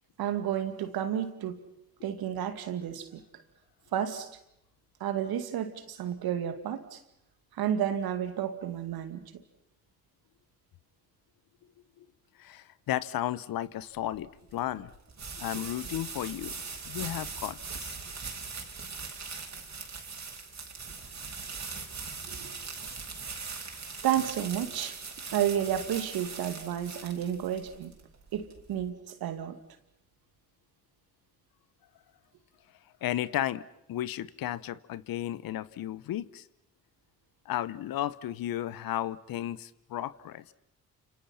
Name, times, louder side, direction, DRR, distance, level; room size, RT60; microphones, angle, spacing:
voice 1, 0.2-1.6 2.0-3.2 3.9-4.3 5.0-7.0 7.5-9.3 22.3-22.5 24.0-25.0 25.3-27.9 28.3-29.6, right 10 dB, 70° right, 10 dB, 2.4 m, -31 dB
voice 2, 12.4-14.9 15.4-16.5 16.9-18.0 33.0-36.4 37.5-40.4, left 12 dB, 65° left, 18 dB, 1.0 m, -34 dB
sound 1, 14.0-28.9, right 4 dB, 45° right, 4.8 m, -41 dB
29.5 x 27.5 x 5.8 m, 0.81 s
hypercardioid pair, 40°, 38 cm